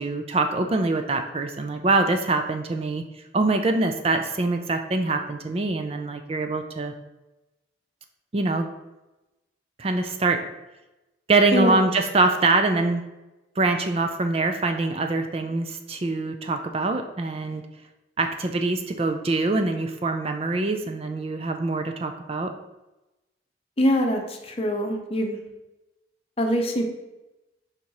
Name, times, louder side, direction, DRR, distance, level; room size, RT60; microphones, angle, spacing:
voice 1, 0.0-3.0 3.3-6.9 8.3-8.7 9.8-10.4 11.3-13.0 13.6-17.6 18.2-22.5, right 3 dB, 35° right, 6 dB, 0.4 m, -24 dB
voice 2, 11.5-11.8 23.8-25.4 26.4-26.8, equal, 35° left, 3 dB, 0.7 m, -23 dB
5.1 x 4.2 x 4.6 m, 1.0 s
head